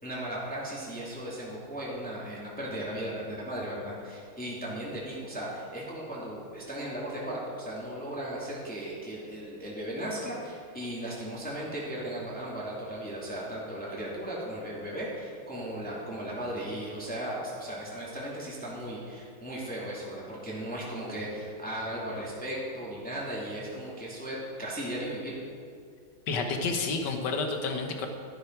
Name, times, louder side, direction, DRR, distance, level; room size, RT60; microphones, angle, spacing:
voice 1, 0.0-25.4, right 1 dB, 5° left, -6 dB, 2.3 m, -36 dB
voice 2, 26.3-28.1, left 4 dB, 60° left, 5 dB, 1.8 m, -30 dB
13.0 x 12.0 x 4.6 m, 2.3 s
omnidirectional pair, 2.3 m